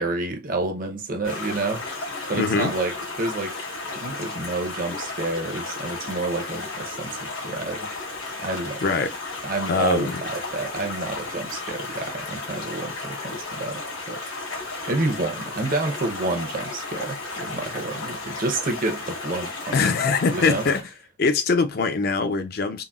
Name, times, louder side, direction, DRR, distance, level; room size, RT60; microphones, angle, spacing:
voice 1, 0.0-3.6 3.9-7.9 8.4-8.8 9.4-14.2 14.9-19.8 20.3-20.7, right 2 dB, 45° right, 0.7 m, -29 dB
Stream, 1.2-20.8, left 3 dB, 85° left, 1.7 m, -34 dB
voice 2, 2.3-2.7 8.8-9.1 9.7-10.1 19.7-20.9 21.2-22.8, left 4 dB, 50° left, 0.4 m, -22 dB
3.8 x 2.1 x 2.3 m
head